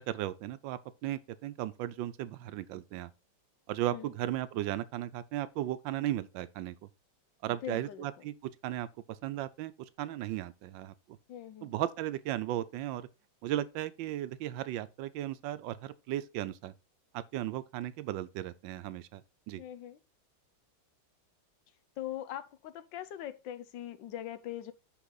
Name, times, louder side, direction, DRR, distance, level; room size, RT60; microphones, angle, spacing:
voice 1, 0.1-3.1 3.7-6.7 7.4-8.3 8.6-8.9 9.2-9.7 10.0-10.9 11.6-13.1 13.4-16.7 17.1-19.2 19.5-19.6, right 13 dB, 80° right, 1.3 m, -36 dB
voice 2, 7.6-8.1 11.3-11.7 19.6-20.0 22.0-24.7, left 11 dB, 75° left, 1.4 m, -41 dB
6.2 x 5.9 x 3.9 m
omnidirectional pair, 2.1 m